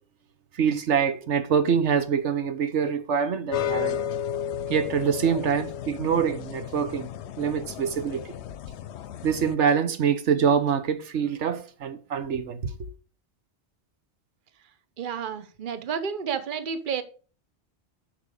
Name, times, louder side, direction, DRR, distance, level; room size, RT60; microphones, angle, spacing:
voice 1, 0.5-4.0 4.7-7.1 7.4-8.2 9.2-12.9, right 7 dB, 85° right, 1.2 m, -25 dB
sound 1, 3.5-9.6, left 9 dB, 75° left, 0.8 m, -33 dB
voice 2, 15.0-17.0, right 7 dB, 50° right, 1.0 m, -31 dB
8.6 x 5.9 x 5.0 m
omnidirectional pair, 1.2 m